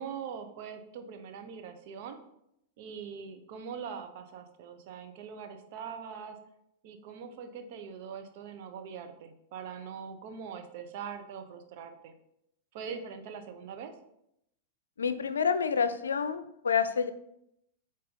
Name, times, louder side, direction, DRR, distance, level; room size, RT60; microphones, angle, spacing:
voice 1, 0.0-2.2 2.8-6.4 6.8-12.1 12.7-13.9, right 6 dB, 55° right, 7 dB, 0.9 m, -42 dB
voice 2, 15.0-17.1, left 6 dB, 85° left, 12 dB, 0.5 m, -28 dB
5.3 x 4.2 x 5.1 m, 0.79 s
hypercardioid pair, 110°, 0 cm